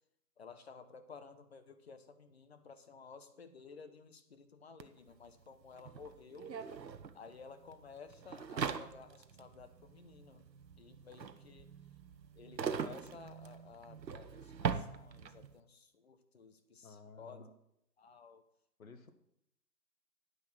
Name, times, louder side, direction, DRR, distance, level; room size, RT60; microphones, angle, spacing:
voice 1, 0.4-6.5 7.1-10.5 10.8-11.7 12.4-17.5 18.0-18.4, left 5 dB, 40° left, 9 dB, 1.0 m, -54 dB
sound 1, 4.8-4.9 5.1-15.5, right 6 dB, 85° right, 1.1 m, -42 dB
voice 2, 16.8-17.5 18.8-19.1, left 3 dB, 55° left, 9 dB, 1.4 m, -54 dB
9.8 x 6.3 x 6.2 m, 0.78 s
hypercardioid pair, 165°, 49 cm